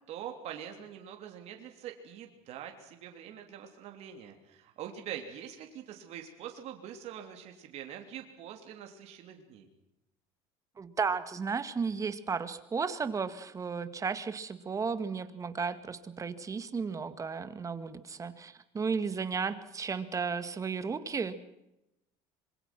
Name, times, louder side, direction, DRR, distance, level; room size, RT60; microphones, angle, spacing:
voice 1, 0.1-9.7, right 9 dB, 60° right, 4 dB, 3.2 m, -44 dB
voice 2, 10.8-21.3, right 5 dB, 25° right, 11 dB, 1.9 m, -34 dB
26.0 x 22.0 x 6.1 m, 0.89 s
supercardioid pair, 110°, 13 cm